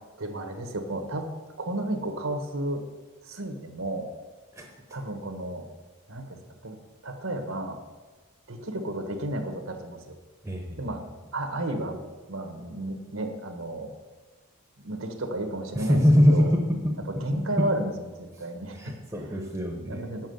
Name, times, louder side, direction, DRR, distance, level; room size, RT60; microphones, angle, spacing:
voice 1, 0.2-1.3 1.6-2.8 3.2-4.1 4.9-5.7 6.1-6.8 7.0-7.8 8.5-10.0 10.8-11.0 11.3-12.0 12.3-13.9 14.8-16.0 16.3-16.5 17.1-18.9 19.8-20.3, right 1 dB, 75° right, 5 dB, 1.3 m, -32 dB
voice 2, 10.4-10.8 15.7-16.6 17.3-17.6 18.4-18.5 18.7-20.3, left 1 dB, 10° right, 1 dB, 0.9 m, -23 dB
7.3 x 6.2 x 7.9 m, 1.3 s
head